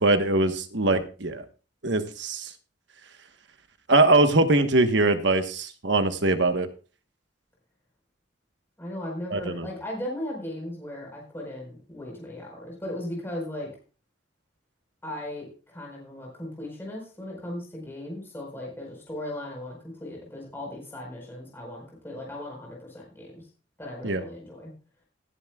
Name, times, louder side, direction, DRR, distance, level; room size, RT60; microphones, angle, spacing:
voice 1, 0.0-1.4 1.8-2.5 3.9-6.7 9.3-9.7 24.0-24.2, right 2 dB, 65° right, 8 dB, 1.3 m, -22 dB
voice 2, 8.8-13.7 15.0-23.5 23.8-24.7, left 1 dB, 10° left, -2 dB, 4.6 m, -37 dB
18.5 x 11.5 x 2.4 m, 0.35 s
head